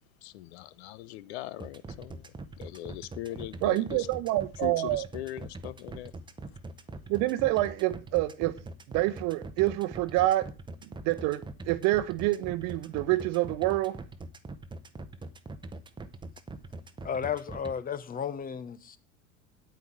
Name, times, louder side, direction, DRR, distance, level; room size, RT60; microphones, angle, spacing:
voice 1, 0.2-4.1 4.6-6.1, left 14 dB, 50° left, 0.7 m, -40 dB
sound 1, 1.6-17.7, right 2 dB, 10° right, 1.0 m, -42 dB
voice 2, 3.6-5.0 7.1-8.5 8.9-10.5 11.0-14.0, right 17 dB, 40° right, 1.0 m, -27 dB
voice 3, 17.0-19.0, left 7 dB, 20° left, 0.9 m, -33 dB
9.5 x 9.3 x 4.6 m
figure-of-eight pair, 75°, 42 cm